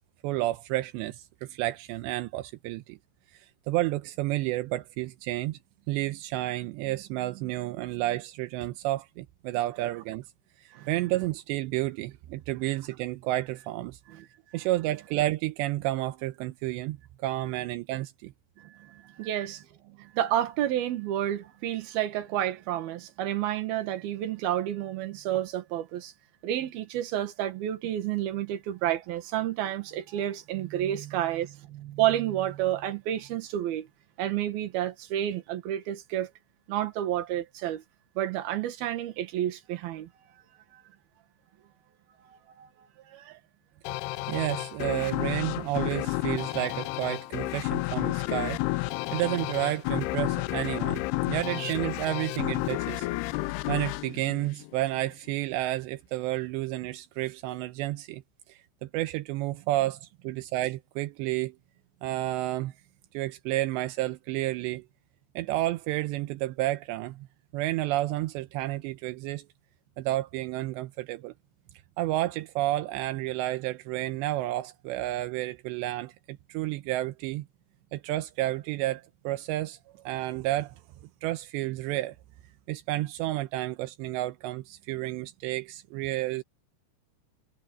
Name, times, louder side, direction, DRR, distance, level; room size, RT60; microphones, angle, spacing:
voice 1, 0.2-3.0 3.3-5.6 5.9-10.3 10.6-14.0 14.5-17.0 17.2-18.3 19.2-19.5 44.3-48.6 49.1-51.0 51.3-53.1 53.7-58.2 58.5-61.6 62.0-62.7 63.1-64.8 65.4-67.3 67.5-69.5 70.0-71.3 72.0-77.5 77.9-79.8 80.0-80.7 81.2-82.2 82.7-86.4, right 16 dB, 85° right, 2.9 m, -31 dB
voice 2, 18.6-26.1 26.4-33.9 34.2-36.3 36.7-37.8 38.2-40.1 42.3-42.7 43.1-43.4 51.6-51.7, right 12 dB, 65° right, 3.3 m, -30 dB
sound 1, 43.9-55.1, left 19 dB, 80° left, 2.4 m, -31 dB
omnidirectional pair, 5.2 m